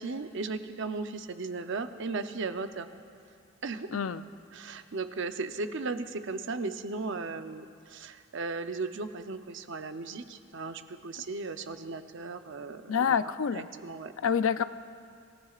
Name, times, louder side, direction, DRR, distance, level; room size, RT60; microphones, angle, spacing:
voice 1, 0.0-2.9 3.6-4.0 4.5-13.2 13.5-14.1 14.6-14.7, right 3 dB, 60° right, 8 dB, 0.7 m, -36 dB
voice 2, 3.9-4.2 12.9-13.7 14.2-14.6, left 7 dB, 80° left, 13 dB, 0.5 m, -27 dB
26.5 x 16.5 x 2.5 m, 2.3 s
head